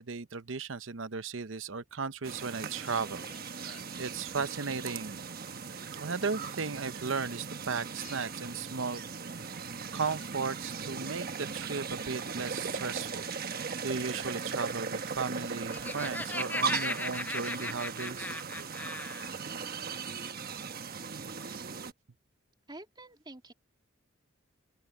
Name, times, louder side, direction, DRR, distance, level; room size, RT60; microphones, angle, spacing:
voice 1, 0.0-3.2 3.6-5.3 6.0-9.0 9.5-9.6 9.9-11.3 11.5-13.3 13.8-18.4, right 5 dB, 65° right, 0.8 m, -36 dB
sound 1, 1.8-2.2 2.7-3.9 5.6-5.7 6.0-6.9 7.4-7.6 8.0-8.5 9.1-9.2 10.0-12.3, left 5 dB, 40° left, 3.5 m, -55 dB
sound 2, 2.2-21.9, right 5 dB, 50° right, 1.1 m, -38 dB
Laughter, 15.5-19.3, left 2 dB, 10° left, 0.4 m, -37 dB
voice 2, 22.7-23.5, right 2 dB, 20° right, 3.4 m, -48 dB
open air
head